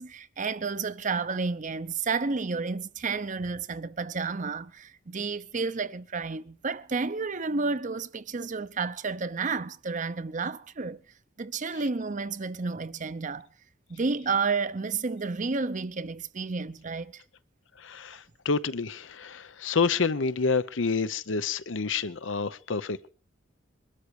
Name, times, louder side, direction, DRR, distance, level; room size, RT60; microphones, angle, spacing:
voice 1, 0.0-11.0 11.4-13.5 13.9-17.2, right 4 dB, 40° right, 0.7 m, -31 dB
voice 2, 17.8-23.1, left 4 dB, 80° left, 0.8 m, -28 dB
22.0 x 13.0 x 4.8 m
head